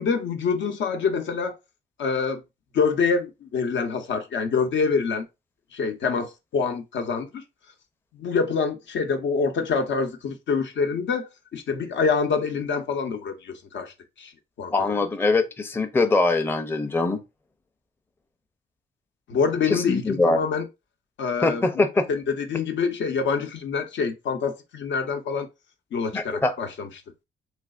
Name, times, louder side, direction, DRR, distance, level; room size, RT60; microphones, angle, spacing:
voice 1, 0.0-1.6 2.0-2.4 2.7-5.2 5.7-7.4 8.1-13.9 14.2-14.3 14.6-15.0 19.3-20.7 21.2-25.5 25.9-26.9, left 5 dB, 70° left, 0.8 m, -26 dB
voice 2, 14.7-17.2 19.7-20.4 21.4-22.0 26.1-26.5, left 3 dB, 10° left, 0.5 m, -22 dB
3.2 x 3.2 x 2.4 m
cardioid pair, 90°, 20 cm